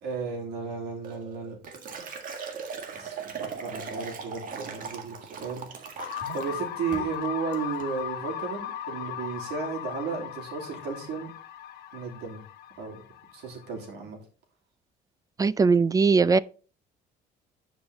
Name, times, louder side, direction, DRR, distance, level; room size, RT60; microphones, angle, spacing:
voice 1, 0.0-1.6 1.8-2.6 2.9-11.3 11.9-12.4 12.8-13.0 13.3-14.2, right 5 dB, 80° right, 3.0 m, -34 dB
Liquid, 1.0-6.6 6.9-7.2 7.5-7.9, right 5 dB, 55° right, 1.8 m, -39 dB
sound 1, 6.0-13.9, left 10 dB, 70° left, 1.0 m, -37 dB
voice 2, 15.4-16.4, right 4 dB, 20° right, 0.3 m, -20 dB
9.3 x 5.2 x 4.1 m
cardioid pair, 110°, 17 cm